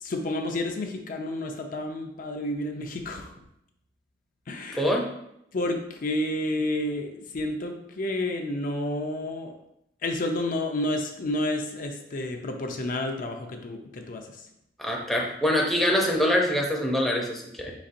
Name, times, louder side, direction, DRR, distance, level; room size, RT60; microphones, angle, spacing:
voice 1, 0.0-3.3 4.5-4.9 5.5-9.6 10.0-14.4, left 1 dB, 50° left, 3 dB, 0.5 m, -30 dB
voice 2, 4.7-5.0 14.8-17.7, equal, ahead, -2 dB, 0.6 m, -24 dB
4.9 x 4.1 x 2.5 m, 0.79 s
head